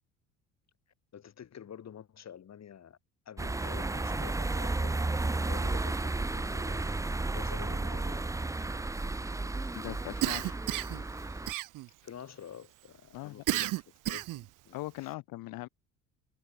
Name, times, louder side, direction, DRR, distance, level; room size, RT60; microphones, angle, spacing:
voice 1, 1.1-3.0 3.2-4.9 5.4-6.9 7.3-8.3 12.0-15.2, left 9 dB, 45° left, 6.6 m, -49 dB
sound 1, 3.4-11.5, right 2 dB, 10° right, 0.7 m, -33 dB
voice 2, 9.7-10.6 13.1-13.4 14.7-15.7, left 19 dB, 70° left, 3.8 m, -40 dB
Cough, 10.2-11.0 11.5-12.1 13.5-14.5, right 17 dB, 60° right, 1.0 m, -32 dB
hypercardioid pair, 70°, 36 cm